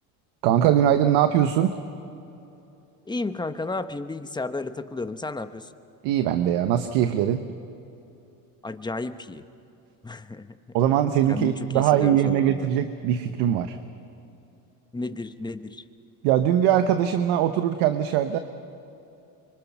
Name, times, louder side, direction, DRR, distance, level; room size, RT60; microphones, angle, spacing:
voice 1, 0.4-1.8 6.0-7.4 10.7-13.8 16.2-18.4, right 10 dB, 80° right, 9 dB, 1.1 m, -21 dB
voice 2, 3.1-5.7 8.6-9.4 10.0-10.5 11.3-12.7 14.9-15.8, left 3 dB, 10° left, 10 dB, 1.0 m, -33 dB
25.0 x 24.0 x 6.0 m, 2.8 s
supercardioid pair, 95°, 42 cm